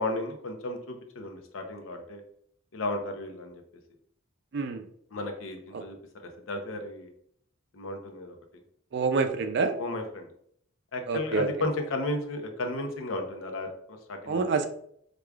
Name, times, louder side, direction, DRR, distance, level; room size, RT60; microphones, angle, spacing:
voice 1, 0.0-2.2 2.7-3.6 5.1-6.0 6.5-7.1 7.7-8.4 9.8-10.3 10.9-14.4, left 2 dB, 80° left, 4 dB, 0.7 m, -34 dB
voice 2, 4.5-4.8 5.7-5.8 8.9-9.8 11.1-11.5 14.3-14.7, right 4 dB, 55° right, 8 dB, 0.4 m, -27 dB
4.8 x 2.3 x 2.3 m, 0.65 s
head